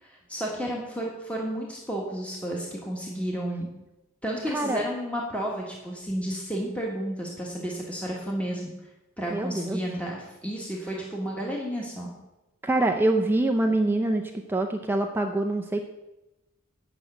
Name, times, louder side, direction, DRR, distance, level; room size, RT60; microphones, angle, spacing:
voice 1, 0.0-3.7 4.2-8.7 9.2-12.1, equal, 5° left, -3 dB, 1.4 m, -32 dB
voice 2, 4.5-4.8 9.3-9.8 12.6-15.8, right 2 dB, 10° right, 3 dB, 0.5 m, -25 dB
8.3 x 5.9 x 7.9 m, 0.99 s
head